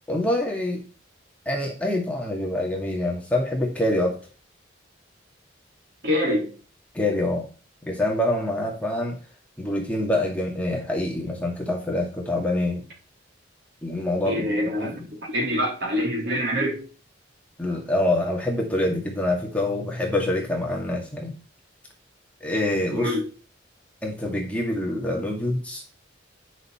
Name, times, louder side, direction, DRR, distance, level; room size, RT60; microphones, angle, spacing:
voice 1, 0.1-0.8 1.5-4.2 6.9-7.5 7.8-9.2 9.6-12.8 13.8-15.1 17.6-21.3 22.4-23.1 24.0-25.8, left 1 dB, 5° left, -1 dB, 2.1 m, -26 dB
voice 2, 6.0-6.6 14.2-16.9 22.9-23.3, equal, 55° right, -1 dB, 3.7 m, -25 dB
11.0 x 6.5 x 4.4 m, 0.35 s
head